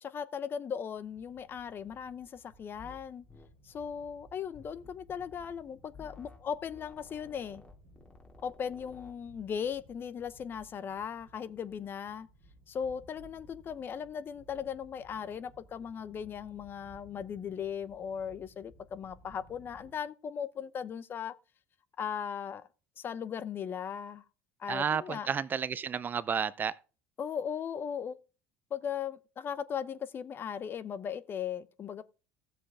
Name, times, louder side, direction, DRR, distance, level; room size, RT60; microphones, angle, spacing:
voice 1, 0.0-3.2 3.6-7.6 8.4-12.3 12.7-21.3 22.0-22.7 23.0-24.2 24.6-25.3 27.2-28.2 28.7-32.0, left 7 dB, 40° left, 0.9 m, -38 dB
sound 1, 0.9-19.9, right 1 dB, 85° left, 5.2 m, -59 dB
sound 2, 2.8-3.0 3.3-3.5 4.5-5.3 5.9-6.4 6.7-9.2, left 4 dB, 20° left, 2.6 m, -54 dB
voice 2, 24.7-26.8, right 7 dB, 35° right, 0.6 m, -31 dB
14.5 x 7.4 x 3.5 m
hypercardioid pair, 70°, 6 cm